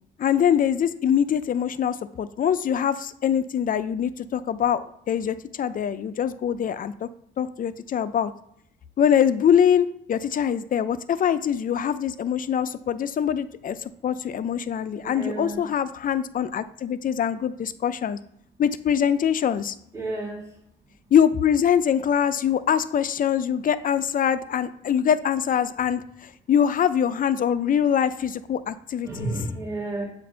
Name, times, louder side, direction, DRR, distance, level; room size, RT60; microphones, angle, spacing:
voice 1, 0.2-7.1 7.4-8.3 9.0-18.2 18.6-19.7 21.1-29.3, left 8 dB, 45° left, 13 dB, 0.4 m, -23 dB
voice 2, 14.9-15.6 19.9-20.4 29.0-30.1, right 2 dB, 15° right, -4 dB, 1.9 m, -31 dB
7.5 x 2.5 x 5.5 m, 0.73 s
cardioid pair, 90°, 20 cm